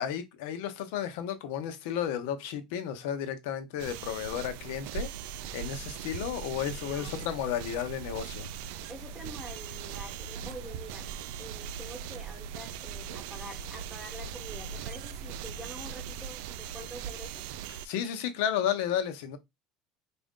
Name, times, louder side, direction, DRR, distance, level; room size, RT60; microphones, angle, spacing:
voice 1, 0.0-5.1 5.5-8.5 17.7-19.4, left 9 dB, 70° left, 0.7 m, -33 dB
sound 1, 3.8-17.9, right 10 dB, 65° right, 0.3 m, -40 dB
sound 2, 5.3-16.2, equal, 30° right, 0.7 m, -48 dB
voice 2, 8.9-11.1 11.4-17.4, equal, 5° right, 1.0 m, -46 dB
4.1 x 2.6 x 3.6 m
cardioid pair, 175°, 0 cm